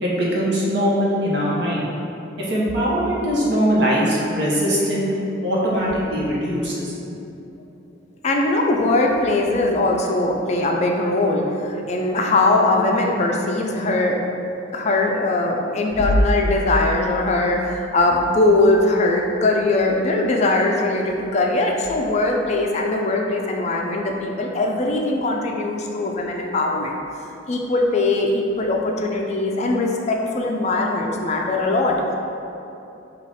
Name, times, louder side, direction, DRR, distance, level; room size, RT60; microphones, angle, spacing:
voice 1, 0.0-1.8 2.4-5.1 5.4-7.2, equal, 65° right, -6 dB, 1.0 m, -21 dB
voice 2, 8.2-14.2 14.7-27.0 27.5-32.1, left 2 dB, 35° left, 1 dB, 0.3 m, -20 dB
4.8 x 2.4 x 4.0 m, 2.9 s
head